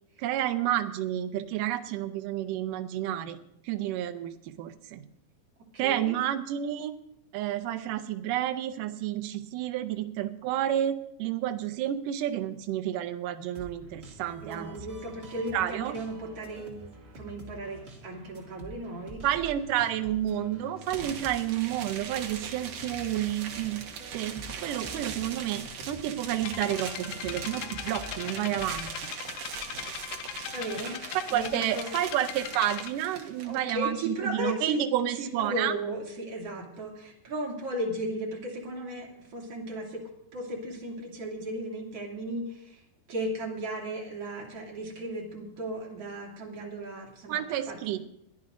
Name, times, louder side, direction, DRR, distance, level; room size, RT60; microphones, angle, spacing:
voice 1, 0.2-3.4 3.7-5.0 5.8-6.9 7.3-14.7 15.5-16.0 19.2-23.8 24.1-24.3 24.6-28.9 31.3-35.7 47.3-48.1, right 12 dB, 85° right, 8 dB, 1.9 m, -30 dB
voice 2, 5.8-6.1 14.4-19.2 30.5-30.9 31.3-31.9 33.4-34.8 35.1-40.0 40.3-42.8 43.1-47.4 47.7-47.8, right 1 dB, 40° right, -2 dB, 3.1 m, -35 dB
sound 1, 13.5-28.9, equal, 25° right, 1.6 m, -48 dB
sound 2, 20.8-33.6, right 6 dB, 65° right, 1.7 m, -40 dB
sound 3, 26.4-32.9, left 12 dB, 80° left, 2.5 m, -40 dB
21.5 x 14.0 x 2.6 m, 0.76 s
omnidirectional pair, 4.8 m